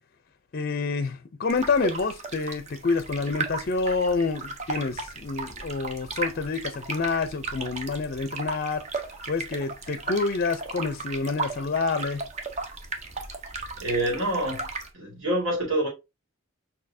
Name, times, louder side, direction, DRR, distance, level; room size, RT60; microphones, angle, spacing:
voice 1, 0.5-8.8 9.3-12.2, left 4 dB, 50° left, 0.4 m, -28 dB
sound 1, 1.5-14.9, right 3 dB, 35° right, 0.7 m, -35 dB
voice 2, 13.8-14.7 14.9-15.9, right 1 dB, 70° right, 1.8 m, -26 dB
6.4 x 2.7 x 2.6 m
head